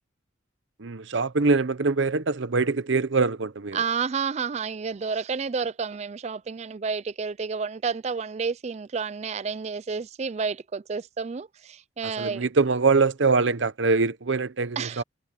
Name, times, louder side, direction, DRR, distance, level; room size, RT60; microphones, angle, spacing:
voice 1, 0.8-3.8 12.0-15.0, right 4 dB, 65° right, 0.8 m, -23 dB
voice 2, 3.7-12.4 14.8-15.0, right 5 dB, 30° right, 0.3 m, -30 dB
head